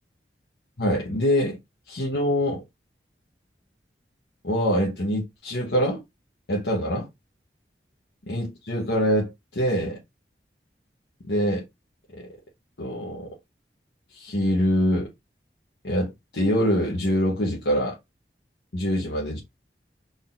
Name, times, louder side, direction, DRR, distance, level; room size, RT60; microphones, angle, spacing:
voice 1, 0.8-1.6 1.9-2.6 4.4-6.0 6.5-7.1 8.3-10.0 11.3-11.6 12.2-12.3 12.8-13.3 14.1-15.1 15.8-18.0 18.7-19.4, equal, 75° left, 1.1 m, -24 dB
3.9 x 3.9 x 2.5 m
head